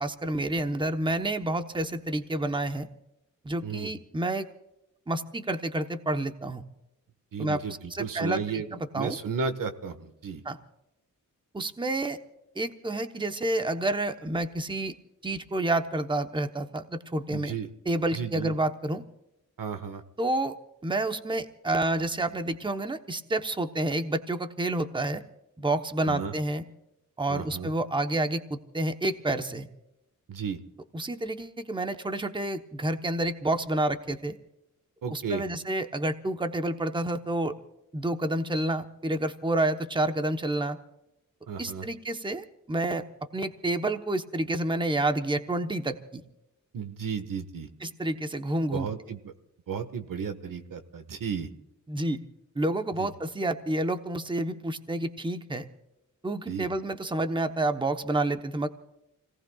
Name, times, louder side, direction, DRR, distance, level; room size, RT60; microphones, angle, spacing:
voice 1, 0.0-2.9 3.4-4.5 5.1-6.6 7.4-7.6 7.9-9.2 10.4-10.6 11.5-12.2 12.6-14.9 15.2-17.5 17.8-19.0 20.2-20.5 20.8-25.2 25.6-26.6 27.2-29.7 30.9-34.4 35.1-37.6 37.9-40.8 41.6-43.0 43.3-46.2 47.8-48.9 51.9-52.2 52.5-55.7 56.2-58.7, right 2 dB, 15° right, 7 dB, 1.0 m, -29 dB
voice 2, 7.3-8.6 8.9-10.4 17.3-17.7 18.1-18.5 19.6-20.0 26.0-26.3 27.3-27.7 30.3-30.6 35.0-35.4 41.5-41.9 46.7-47.7 48.7-49.3 49.7-51.5 53.0-53.1 56.5-56.7, right 6 dB, 90° right, 9 dB, 1.6 m, -33 dB
29.0 x 18.5 x 2.4 m, 0.89 s
wide cardioid pair, 130°, 32 cm